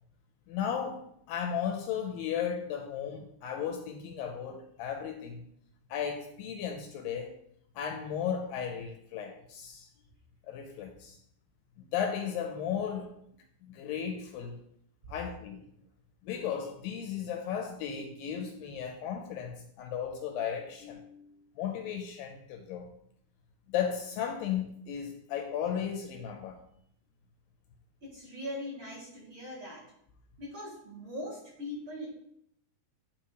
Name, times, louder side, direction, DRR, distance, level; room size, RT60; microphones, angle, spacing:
voice 1, 0.5-5.4 5.9-7.4 7.8-9.9 10.5-11.2 11.8-13.1 13.6-14.6 15.1-15.6 16.2-21.0 21.6-22.9 23.7-26.6, left 8 dB, 80° left, 4 dB, 2.1 m, -35 dB
voice 2, 20.8-21.4 28.0-29.8 30.4-32.2, left 1 dB, 40° right, -7 dB, 2.4 m, -41 dB
9.9 x 3.4 x 4.7 m, 0.71 s
omnidirectional pair, 4.4 m